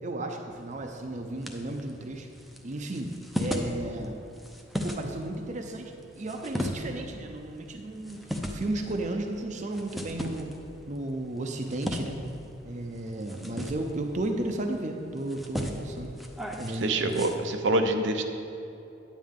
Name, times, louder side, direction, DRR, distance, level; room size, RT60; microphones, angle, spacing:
voice 1, 0.0-2.3 2.6-4.2 4.8-10.5 10.9-12.2 12.6-16.1 16.6-17.2, right 2 dB, 40° right, 4 dB, 0.6 m, -34 dB
sound 1, 0.5-17.3, equal, ahead, 0.6 m, -38 dB
voice 2, 16.8-18.2, right 2 dB, 75° right, 6 dB, 0.7 m, -26 dB
9.7 x 9.3 x 3.7 m, 2.8 s
head